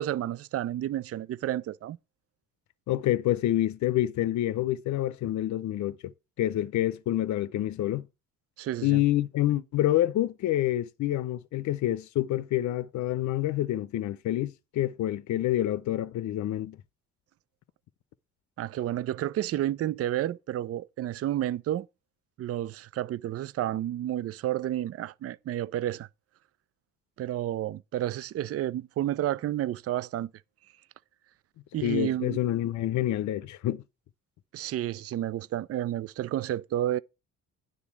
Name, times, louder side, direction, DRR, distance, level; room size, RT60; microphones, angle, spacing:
voice 1, 0.0-2.0 8.6-9.0 18.6-21.9 22.4-26.1 27.2-30.3 31.7-32.4 34.5-37.0, right 12 dB, 50° right, 0.5 m, -31 dB
voice 2, 2.9-6.1 6.4-8.1 8.8-16.8 31.8-33.8, left 13 dB, 70° left, 0.6 m, -27 dB
9.7 x 4.0 x 7.1 m
cardioid pair, 90°, 30 cm